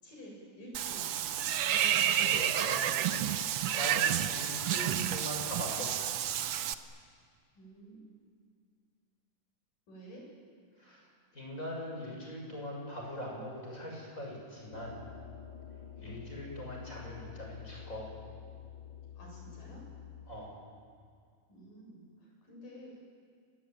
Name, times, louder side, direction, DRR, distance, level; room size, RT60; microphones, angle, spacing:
voice 1, 0.0-1.6 7.6-8.1 9.9-10.3 15.9-16.2 19.1-19.8 21.5-23.0, equal, 85° left, -1 dB, 9.3 m, -50 dB
Water / Bathtub (filling or washing), 0.7-6.7, right 10 dB, 75° right, 1.3 m, -30 dB
voice 2, 2.1-3.2 3.8-6.1 10.8-15.0 16.0-18.1 20.3-20.6, equal, 25° left, -1 dB, 7.2 m, -41 dB
sound 1, 14.7-20.3, left 9 dB, 60° left, 4.3 m, -48 dB
30.0 x 21.5 x 9.2 m, 2.1 s
omnidirectional pair, 3.7 m